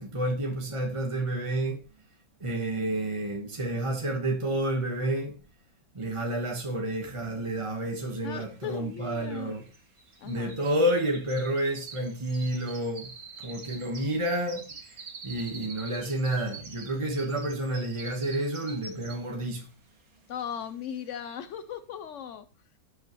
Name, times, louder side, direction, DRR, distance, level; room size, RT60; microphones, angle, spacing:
voice 1, 0.0-1.8 2.4-5.4 5.9-9.7 10.2-13.1 13.4-14.6 14.9-19.6, right 1 dB, 20° right, 1.1 m, -30 dB
sound 1, 7.7-7.8 8.0-19.5 19.9-20.2 20.6-20.7, right 4 dB, 55° right, 2.1 m, -46 dB
voice 2, 8.2-9.6 10.2-10.6 20.3-22.4, left 8 dB, 85° left, 0.6 m, -37 dB
17.0 x 5.7 x 3.0 m
omnidirectional pair, 1.9 m